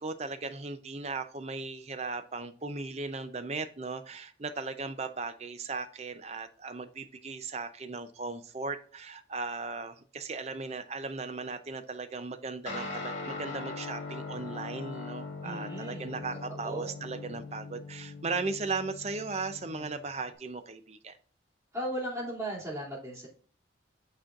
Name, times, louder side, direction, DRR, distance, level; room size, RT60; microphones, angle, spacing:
voice 1, 0.0-21.2, right 3 dB, 35° right, 10 dB, 0.5 m, -37 dB
Guitar, 12.7-20.4, left 3 dB, 85° left, 1.9 m, -41 dB
voice 2, 15.4-16.1 16.6-16.9 21.7-23.3, right 1 dB, 15° right, -5 dB, 2.7 m, -36 dB
8.7 x 4.3 x 2.5 m, 0.43 s
head